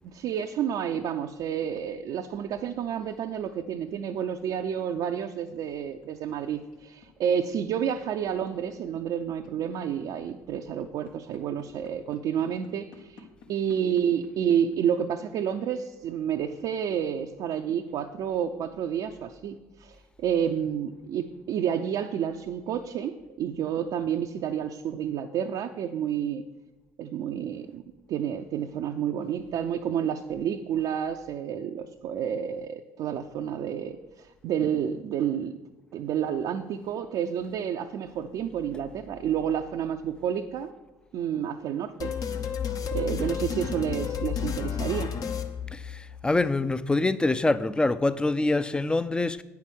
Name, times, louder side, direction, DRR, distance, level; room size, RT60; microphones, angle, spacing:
voice 1, 0.0-26.4 27.0-27.8 28.1-35.6 35.9-40.7 41.1-42.1 42.4-42.6 42.9-45.1, right 8 dB, 60° right, 0.5 m, -30 dB
sound 1, 5.6-15.7, left 5 dB, 70° left, 1.2 m, -52 dB
sound 2, 42.0-46.3, left 7 dB, 50° left, 0.9 m, -31 dB
voice 2, 45.7-49.4, left 2 dB, 10° left, 0.5 m, -25 dB
8.7 x 5.8 x 6.1 m
hypercardioid pair, 60°, 8 cm